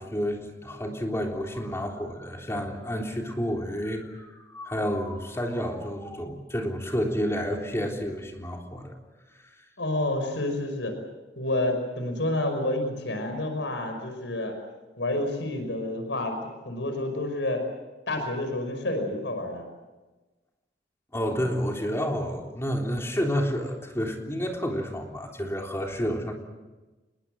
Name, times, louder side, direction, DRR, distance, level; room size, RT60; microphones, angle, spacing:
voice 1, 0.0-8.9 21.1-26.3, equal, 15° left, 1 dB, 3.6 m, -30 dB
voice 2, 9.8-10.9 11.4-14.5 15.0-16.4 16.6-17.6 18.1-19.7, left 1 dB, 85° left, 6 dB, 5.6 m, -29 dB
26.5 x 21.5 x 7.8 m, 1.2 s
head